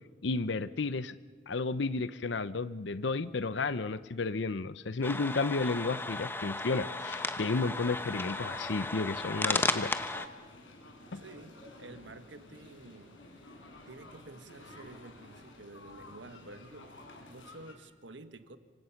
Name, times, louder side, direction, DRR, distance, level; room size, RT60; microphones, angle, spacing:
voice 1, 0.2-1.1 1.5-9.9 11.1-11.2, left 3 dB, 65° left, 0.7 m, -32 dB
sound 1, 5.0-10.3, left 2 dB, 10° left, 1.0 m, -34 dB
sound 2, 7.5-17.7, left 2 dB, 80° left, 5.2 m, -51 dB
voice 2, 11.1-13.2 13.9-17.0 17.3-18.6, right 2 dB, 65° right, 1.5 m, -50 dB
27.0 x 25.0 x 5.9 m
head